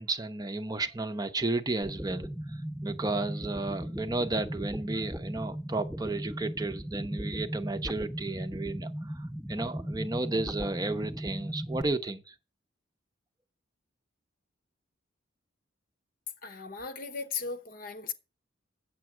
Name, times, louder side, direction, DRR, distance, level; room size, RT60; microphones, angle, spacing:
voice 1, 0.0-12.3, right 2 dB, 20° right, 0.7 m, -33 dB
sound 1, 1.8-11.8, equal, 5° right, 1.0 m, -37 dB
voice 2, 16.4-18.1, left 5 dB, 45° left, 0.9 m, -37 dB
8.8 x 7.5 x 6.0 m
head